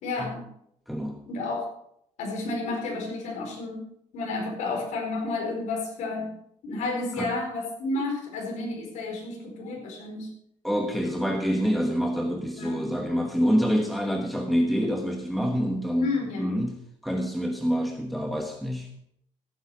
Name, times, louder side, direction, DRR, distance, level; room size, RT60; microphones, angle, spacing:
voice 1, 0.0-0.4 1.3-1.7 2.2-6.3 6.6-10.3 12.6-12.9 16.0-16.5, left 3 dB, 70° left, 0 dB, 4.6 m, -31 dB
voice 2, 0.9-1.2 7.2-7.3 10.6-18.9, equal, ahead, 3 dB, 1.2 m, -27 dB
16.0 x 9.2 x 4.9 m, 0.73 s
cardioid pair, 130°, 13 cm